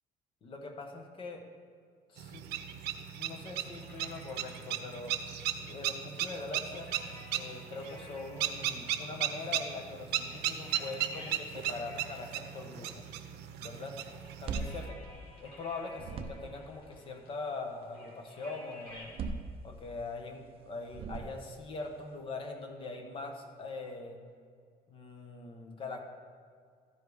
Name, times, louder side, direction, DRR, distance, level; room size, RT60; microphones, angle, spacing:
voice 1, 0.4-1.4 2.1-2.5 3.2-5.2 5.6-6.9 7.3-13.1 13.6-14.0 14.4-15.0 15.4-19.1 19.6-24.2 24.9-26.0, left 3 dB, 30° left, 4 dB, 0.9 m, -42 dB
sound 1, 2.2-14.9, right 11 dB, 85° right, 0.7 m, -36 dB
sound 2, 3.8-19.2, left 1 dB, 70° left, 2.4 m, -55 dB
sound 3, 14.2-15.6 15.9-16.7 18.9-20.1 20.8-21.7, right 4 dB, 35° right, 0.5 m, -40 dB
13.0 x 5.1 x 4.8 m, 2.1 s
cardioid pair, 170°, 17 cm